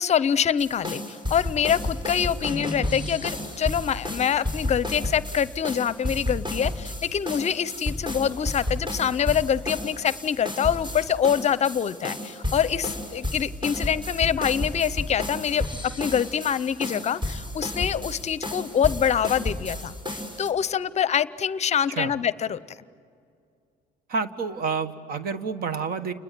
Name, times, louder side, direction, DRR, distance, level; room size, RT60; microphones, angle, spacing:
voice 1, 0.0-15.6 16.0-19.9 20.4-22.6, left 8 dB, 40° left, 17 dB, 0.7 m, -25 dB
sound 1, 0.6-20.5, left 1 dB, 30° right, 5.6 m, -32 dB
voice 2, 24.1-26.1, right 5 dB, 60° right, 11 dB, 1.6 m, -29 dB
29.5 x 21.0 x 9.5 m, 2.3 s
cardioid pair, 110°, 17 cm